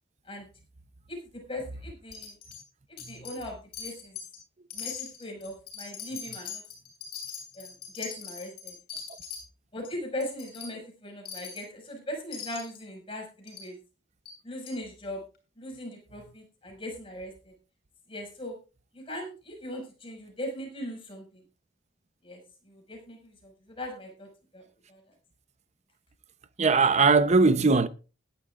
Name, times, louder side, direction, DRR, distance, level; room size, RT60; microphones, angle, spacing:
voice 1, 1.1-2.4 2.9-4.2 4.7-6.6 7.6-8.8 9.7-13.8 14.4-15.2 15.6-17.5 18.1-18.6 18.9-21.4 22.2-25.0, left 1 dB, 30° left, 5.6 m, -39 dB
Wind chime, 2.1-2.6 3.0-3.5 3.7-4.4 4.7-9.4 9.8-9.9 10.2-10.7 11.2-11.6 12.3-12.8 13.5-13.7 14.2-14.3 14.7-14.8, left 7 dB, 50° left, 7.3 m, -41 dB
voice 2, 26.6-27.9, right 4 dB, 35° right, 0.7 m, -20 dB
20.0 x 11.5 x 2.4 m
head